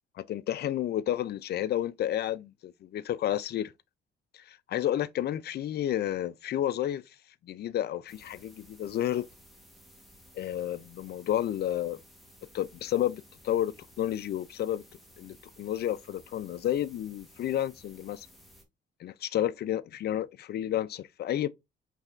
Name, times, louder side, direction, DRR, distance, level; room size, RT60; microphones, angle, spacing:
voice 1, 0.2-3.7 4.3-7.0 7.4-9.2 10.3-12.0 12.5-14.8 15.2-18.3 19.0-21.5, left 11 dB, 55° left, 0.4 m, -31 dB
sound 1, 8.1-18.6, equal, ahead, 1.3 m, -56 dB
4.6 x 3.3 x 2.5 m
cardioid pair, 90°, 20 cm